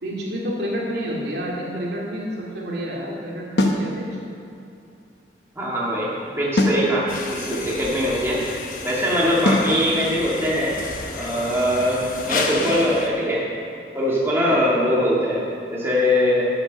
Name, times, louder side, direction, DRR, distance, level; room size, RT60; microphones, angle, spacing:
voice 1, 0.0-4.0, equal, 70° right, -4 dB, 2.3 m, -29 dB
sound 1, 3.6-3.9 6.6-6.9 9.5-9.8, left 1 dB, 75° left, 1.0 m, -19 dB
voice 2, 5.6-8.4 8.8-10.8 11.1-13.4 13.9-15.4 15.7-16.5, equal, 15° right, -6 dB, 1.9 m, -22 dB
Tokyo Construction Site, 7.1-13.1, left 3 dB, 50° left, 0.9 m, -31 dB
8.9 x 8.5 x 6.4 m, 2.7 s
head